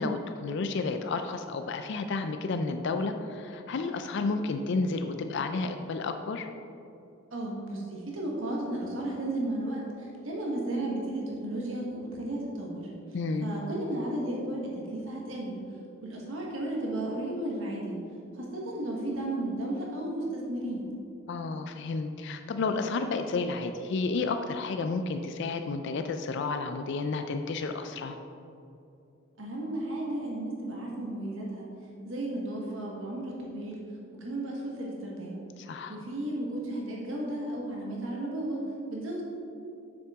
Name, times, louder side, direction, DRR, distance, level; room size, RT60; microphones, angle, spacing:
voice 1, 0.0-6.5 13.1-13.5 21.3-28.2 35.6-36.0, left 3 dB, 60° left, 7 dB, 0.4 m, -31 dB
voice 2, 7.3-12.9 13.4-15.6 16.0-18.0 18.3-20.8 29.4-31.7 32.0-33.8 34.1-35.4 35.9-38.6 38.9-39.2, right 1 dB, 70° right, -2 dB, 1.3 m, -34 dB
7.5 x 6.4 x 3.6 m, 2.6 s
head